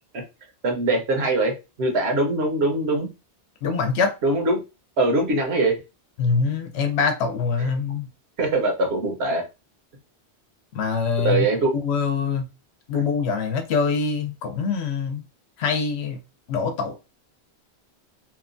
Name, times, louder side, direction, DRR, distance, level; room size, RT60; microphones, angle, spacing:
voice 1, 0.6-3.1 4.2-4.6 5.0-5.8 7.6-7.7 8.4-9.4 11.2-11.7, right 2 dB, 70° right, 1.0 m, -22 dB
voice 2, 3.6-4.1 6.2-8.1 10.7-11.5 11.7-12.5 12.9-15.2 15.6-16.2 16.5-17.0, left 5 dB, 75° left, 0.8 m, -24 dB
2.9 x 2.2 x 2.5 m
omnidirectional pair, 1.1 m